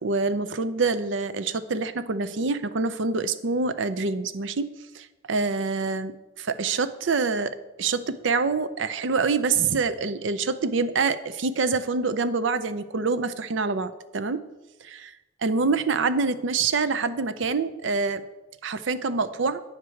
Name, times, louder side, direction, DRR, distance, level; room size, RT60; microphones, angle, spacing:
voice 1, 0.0-6.1 6.5-14.4 14.8-15.0 15.4-18.2 18.6-19.6, right 4 dB, 65° right, 12 dB, 0.6 m, -26 dB
9.4 x 4.8 x 7.0 m, 1.1 s
head